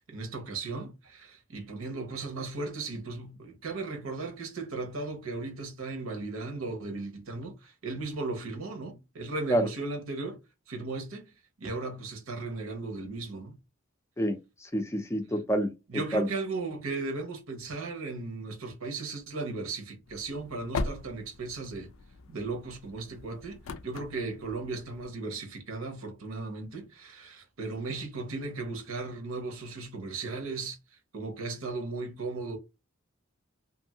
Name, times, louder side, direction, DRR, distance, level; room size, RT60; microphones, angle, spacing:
voice 1, 0.1-10.4 10.7-11.3 11.6-13.6 15.9-21.9 22.3-30.8 31.1-32.6, right 3 dB, 90° right, 0.9 m, -36 dB
voice 2, 14.2-15.7 16.1-16.3, equal, 15° left, 0.4 m, -28 dB
sound 1, 20.1-25.1, left 3 dB, 80° left, 0.4 m, -40 dB
2.7 x 2.6 x 2.7 m
head